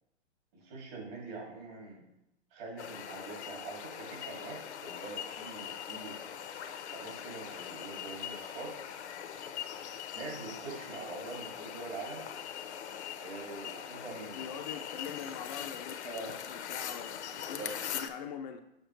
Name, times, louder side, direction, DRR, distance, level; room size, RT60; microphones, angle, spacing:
voice 1, 0.5-2.0 2.5-6.2 6.8-8.7 10.1-12.2 13.2-14.4 16.0-16.4 17.6-17.7, right 3 dB, 55° right, -2 dB, 2.6 m, -44 dB
sound 1, 2.8-18.1, left 9 dB, 75° left, 0.7 m, -41 dB
voice 2, 14.3-17.6 17.9-18.6, left 7 dB, 40° left, 6 dB, 0.4 m, -43 dB
6.5 x 5.8 x 3.1 m, 0.86 s
hypercardioid pair, 130°, 34 cm